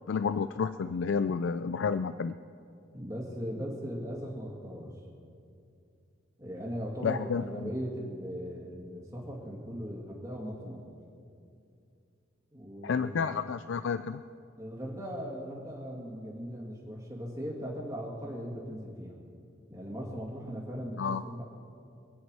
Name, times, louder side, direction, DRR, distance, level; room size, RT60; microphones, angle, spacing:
voice 1, 0.1-2.3 7.0-7.7 12.8-14.2 21.0-21.2, left 5 dB, 75° left, 12 dB, 0.4 m, -30 dB
voice 2, 2.9-5.0 6.4-11.0 12.5-13.3 14.6-19.2 19.7-21.4, equal, 15° right, -3 dB, 2.2 m, -38 dB
26.5 x 9.4 x 4.8 m, 2.5 s
head